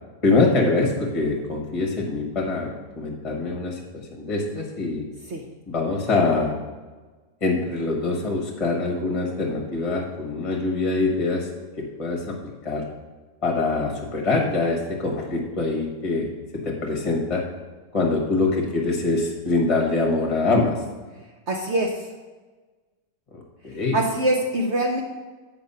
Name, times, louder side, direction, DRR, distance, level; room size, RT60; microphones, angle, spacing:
voice 1, 0.2-5.1 5.7-6.6 7.4-11.5 11.8-12.4 12.6-12.9 13.4-17.4 17.9-20.8 23.3-24.0, left 3 dB, 20° left, 0 dB, 1.2 m, -24 dB
voice 2, 21.5-22.1 23.9-25.0, right 1 dB, 55° right, 1 dB, 0.9 m, -23 dB
7.9 x 5.3 x 5.6 m, 1.3 s
omnidirectional pair, 1.8 m